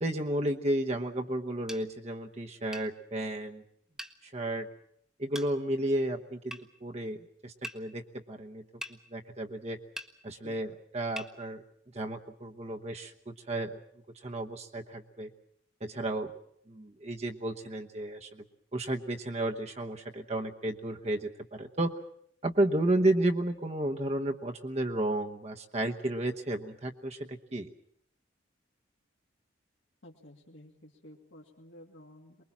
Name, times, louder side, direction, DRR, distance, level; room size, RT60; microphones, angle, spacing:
voice 1, 0.0-3.6 4.2-4.7 5.2-8.0 8.3-8.6 9.1-9.8 10.2-11.6 11.9-13.8 14.2-15.3 15.8-16.3 16.7-18.4 18.7-21.9 22.4-27.7, right 1 dB, 35° right, 3 dB, 1.0 m, -32 dB
sound 1, 1.7-1.8 2.7-2.9 4.0-4.2 5.3-5.5 6.5-6.6 7.6-7.8 8.8-9.0 10.0-10.1 11.2-11.3, equal, 5° right, 0.9 m, -41 dB
voice 2, 10.3-10.6 30.0-32.4, left 1 dB, 75° left, -1 dB, 2.4 m, -53 dB
23.5 x 21.5 x 7.2 m, 0.67 s
head